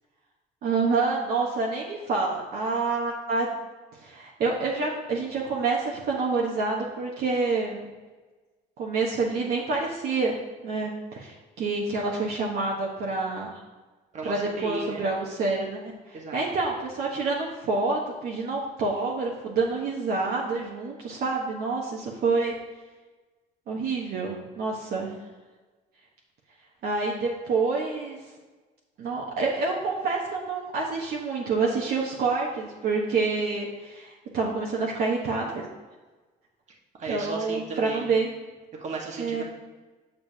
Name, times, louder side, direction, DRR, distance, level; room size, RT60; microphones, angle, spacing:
voice 1, 0.6-3.5 4.0-7.9 8.8-10.4 10.6-13.5 14.2-22.5 23.7-25.1 26.8-28.2 29.0-35.7 37.1-38.3 39.2-39.4, right 4 dB, 65° right, -2 dB, 1.0 m, -27 dB
voice 2, 14.1-15.0 16.1-16.4 36.9-38.2 38.8-39.4, right 4 dB, 45° right, 0 dB, 1.4 m, -35 dB
6.8 x 6.6 x 2.7 m, 1.3 s
cardioid pair, 110°, 17 cm